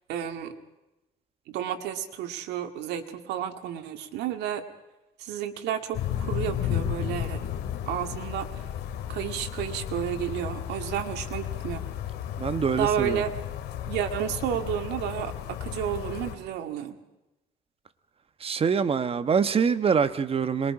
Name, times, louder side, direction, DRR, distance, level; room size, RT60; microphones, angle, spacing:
voice 1, 0.1-0.5 1.5-4.6 5.2-7.4 7.9-8.6 9.1-11.9 12.8-13.3 13.9-17.0, right 10 dB, 85° right, 2.1 m, -31 dB
sound 1, 5.9-16.3, left 10 dB, 80° left, 2.4 m, -33 dB
voice 2, 12.4-13.2 18.4-20.7, right 6 dB, 35° right, 1.2 m, -25 dB
26.5 x 22.0 x 4.9 m
cardioid pair, 110°, 17 cm